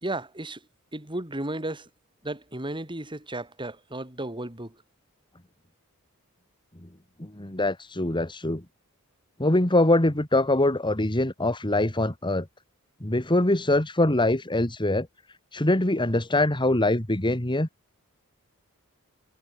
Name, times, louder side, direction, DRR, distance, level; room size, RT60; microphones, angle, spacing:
voice 1, 0.0-0.6 0.9-1.9 2.2-4.7, right 1 dB, 20° right, 3.9 m, -34 dB
voice 2, 7.2-8.6 9.4-12.5 13.0-15.1 15.5-17.7, left 1 dB, 20° left, 2.1 m, -23 dB
head